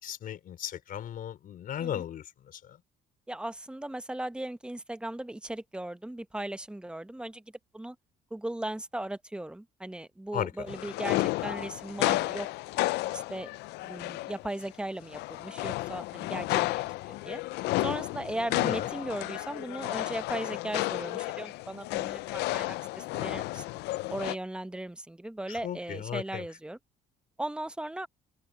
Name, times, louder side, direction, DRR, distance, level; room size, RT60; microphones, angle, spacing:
voice 1, 0.0-2.8 10.3-10.8 18.6-18.9 25.5-26.5, left 10 dB, 55° left, 4.5 m, -36 dB
voice 2, 3.3-7.4 7.7-7.9 8.3-12.8 13.1-13.5 13.8-17.4 17.8-23.6 24.1-26.8 27.4-28.1, right 1 dB, 5° right, 1.0 m, -37 dB
sound 1, 10.7-14.6 15.0-24.3, left 19 dB, 85° left, 0.5 m, -32 dB
open air
cardioid pair, 110°, 17 cm